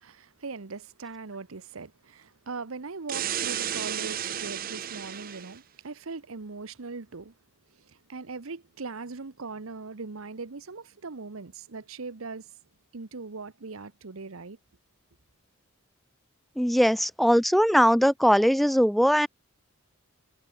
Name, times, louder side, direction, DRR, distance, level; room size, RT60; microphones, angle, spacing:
voice 1, 0.0-7.3 7.9-12.5 12.9-14.6, right 4 dB, 85° right, 1.0 m, -40 dB
sound 1, 3.1-5.6, right 10 dB, 45° right, 0.7 m, -32 dB
voice 2, 16.6-19.3, equal, ahead, 0.4 m, -20 dB
head